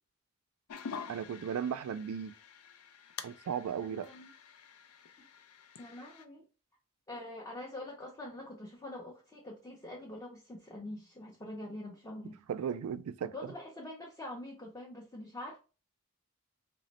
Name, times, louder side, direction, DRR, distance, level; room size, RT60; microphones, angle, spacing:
sound 1, 0.7-6.2, left 6 dB, 90° left, 0.4 m, -48 dB
voice 1, 1.1-2.3 3.2-4.1 12.5-13.3, right 8 dB, 85° right, 0.3 m, -36 dB
voice 2, 3.8-4.3 5.8-6.5 7.1-12.4 13.3-15.6, left 1 dB, 15° left, 0.5 m, -45 dB
3.1 x 2.1 x 4.0 m
head